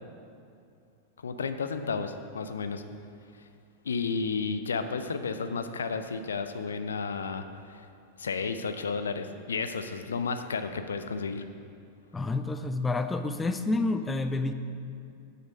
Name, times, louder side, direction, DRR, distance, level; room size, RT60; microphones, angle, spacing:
voice 1, 1.2-2.8 3.4-3.5 3.8-7.9 8.2-11.4, left 5 dB, 70° left, 9 dB, 0.4 m, -32 dB
voice 2, 12.1-14.5, left 2 dB, 10° left, 9 dB, 0.4 m, -29 dB
7.6 x 6.7 x 5.2 m, 2.4 s
figure-of-eight pair, 90°, 0 cm